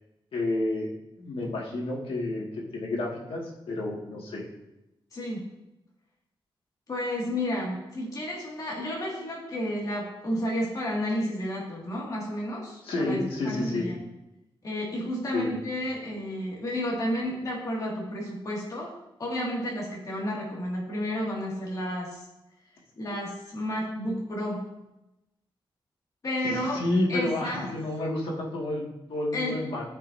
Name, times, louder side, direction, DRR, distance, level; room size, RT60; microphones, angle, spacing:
voice 1, 0.3-0.9 1.2-2.4 2.7-4.4 12.8-13.9 15.3-15.6 26.4-29.8, left 2 dB, 85° left, -3 dB, 2.1 m, -30 dB
voice 2, 5.1-5.4 6.9-13.2 13.4-14.0 14.6-18.9 19.2-22.2 23.0-24.7 26.2-26.8 27.1-27.7 29.3-29.6, left 1 dB, 40° left, -4 dB, 2.2 m, -31 dB
14.0 x 5.6 x 2.7 m, 0.92 s
wide cardioid pair, 160°, 9 cm